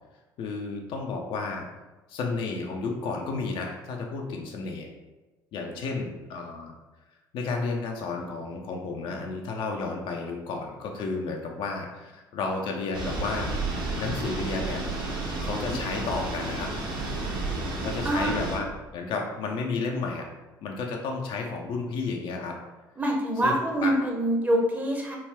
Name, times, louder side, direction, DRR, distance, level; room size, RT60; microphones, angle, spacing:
voice 1, 0.4-1.6 2.1-4.9 5.5-6.7 7.3-13.6 14.0-14.8 15.4-16.7 17.8-20.3 20.6-22.6 23.4-23.5 23.8-23.9, left 4 dB, 50° left, 1 dB, 0.5 m, -32 dB
sound 1, 12.9-18.6, right 2 dB, 40° right, 0.9 m, -31 dB
voice 2, 23.0-25.2, right 1 dB, 15° right, -1 dB, 0.8 m, -25 dB
3.3 x 2.3 x 3.4 m, 1.2 s
figure-of-eight pair, 55°, 11 cm